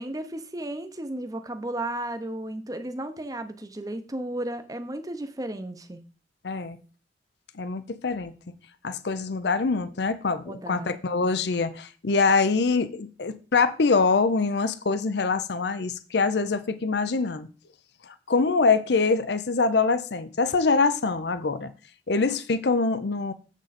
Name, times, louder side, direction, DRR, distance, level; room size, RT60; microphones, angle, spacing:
voice 1, 0.0-6.0 10.5-10.9, right 1 dB, 20° right, 0.7 m, -34 dB
voice 2, 6.4-6.8 7.5-8.3 8.8-17.5 18.0-21.7 22.1-23.3, left 4 dB, 60° left, 0.6 m, -24 dB
7.7 x 6.2 x 4.2 m
head